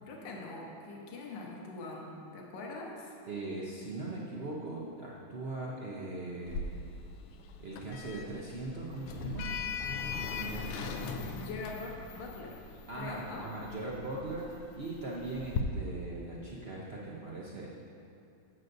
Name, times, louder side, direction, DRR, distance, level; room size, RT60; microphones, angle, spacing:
voice 1, 0.1-3.1 11.3-12.6 13.0-13.5, left 3 dB, 65° left, -2 dB, 1.7 m, -43 dB
voice 2, 3.3-6.6 7.6-9.5 9.8-10.7 12.9-17.7, right 2 dB, 85° right, -4 dB, 0.5 m, -40 dB
Sliding door, 6.5-15.6, left 5 dB, 85° left, 1.5 m, -40 dB
13.5 x 7.8 x 2.6 m, 2.6 s
omnidirectional pair, 2.3 m